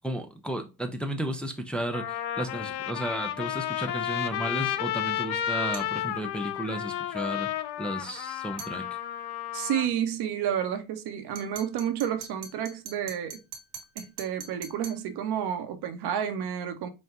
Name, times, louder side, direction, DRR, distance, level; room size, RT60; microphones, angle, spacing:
voice 1, 0.0-7.5 7.8-8.8, right 1 dB, ahead, 0.6 m, -33 dB
Trumpet, 1.2-1.3 1.9-9.9, left 11 dB, 70° left, 0.7 m, -32 dB
sound 1, 5.7-6.0 8.6-8.8 11.4-15.1, right 7 dB, 80° right, 1.3 m, -43 dB
voice 2, 9.5-13.4 14.0-16.9, right 9 dB, 65° right, 0.9 m, -30 dB
5.1 x 2.3 x 3.5 m
supercardioid pair, 75°, 42 cm